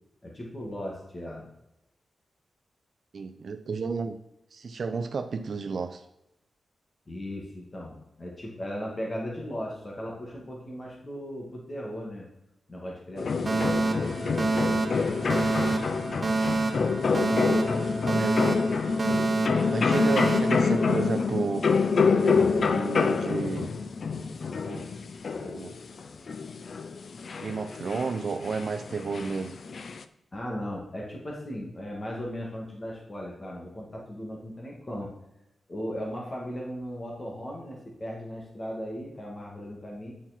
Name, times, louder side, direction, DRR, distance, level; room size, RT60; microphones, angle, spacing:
voice 1, 0.2-1.5 7.1-12.3 12.7-14.4 22.3-22.6 30.3-35.1 35.7-40.1, equal, 30° left, -2 dB, 2.3 m, -37 dB
voice 2, 3.1-4.2 4.5-6.0 18.1-18.4 19.7-21.7 22.1-23.7 24.6-24.9 25.4-25.8 27.4-29.6, right 5 dB, 60° right, 8 dB, 0.5 m, -32 dB
sound 1, 13.2-30.0, left 5 dB, 60° left, 0.5 m, -27 dB
Alarm, 13.5-21.5, right 3 dB, 35° right, 0.9 m, -28 dB
9.4 x 5.7 x 4.4 m, 0.87 s
wide cardioid pair, 100°, 0 cm